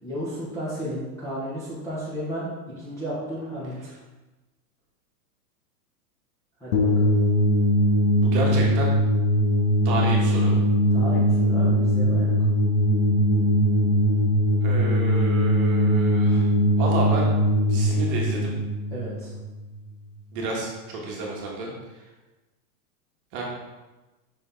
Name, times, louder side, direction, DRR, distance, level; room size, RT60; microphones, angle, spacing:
voice 1, 0.0-2.5 2.8-3.9 6.6-7.1 10.9-12.3 18.9-19.3, equal, 5° left, -10 dB, 1.0 m, -33 dB
sound 1, 6.7-19.8, equal, 55° left, 1.3 m, -21 dB
voice 2, 8.2-8.9 9.8-10.5 14.6-16.5 16.8-17.3 17.6-18.5 20.3-22.1 23.3-23.4, right 2 dB, 35° right, -2 dB, 1.4 m, -30 dB
5.7 x 5.0 x 3.8 m, 1.1 s
supercardioid pair, 165°, 47 cm